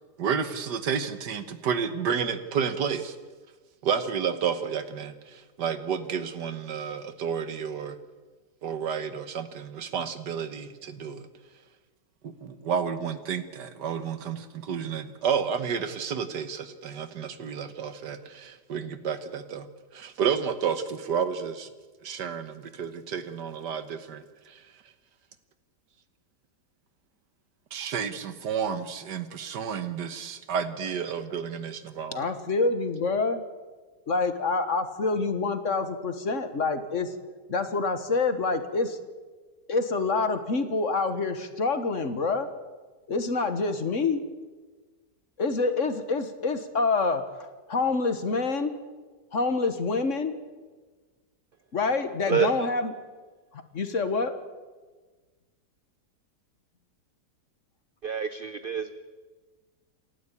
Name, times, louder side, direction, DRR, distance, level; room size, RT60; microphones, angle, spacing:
voice 1, 0.2-3.1 3.8-8.0 8.6-11.2 12.2-19.7 19.9-21.7 22.0-24.6 27.7-32.3, right 7 dB, 80° right, 10 dB, 1.8 m, -31 dB
voice 2, 32.1-33.4 34.1-37.1 37.5-39.0 39.7-42.5 43.1-44.2 45.4-47.2 47.7-48.7 49.3-50.4 51.7-52.9 53.5-54.3, left 3 dB, 50° left, 9 dB, 1.7 m, -26 dB
voice 3, 58.0-59.0, right 7 dB, 50° right, 11 dB, 0.7 m, -27 dB
28.0 x 12.5 x 8.5 m, 1.4 s
omnidirectional pair, 1.8 m